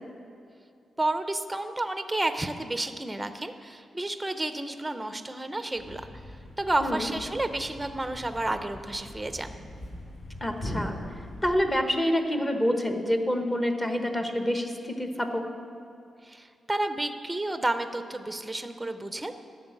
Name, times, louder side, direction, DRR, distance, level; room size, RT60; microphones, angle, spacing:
voice 1, 1.0-6.0 6.6-9.6 16.2-19.3, right 2 dB, 10° right, 9 dB, 0.6 m, -31 dB
Thump thud, 5.7-11.9, left 1 dB, 55° left, 3.1 m, -41 dB
voice 2, 6.8-7.1 10.4-11.0 11.4-15.4, equal, 15° left, 5 dB, 1.0 m, -27 dB
13.0 x 6.5 x 8.9 m, 2.5 s
wide cardioid pair, 160°, 0 cm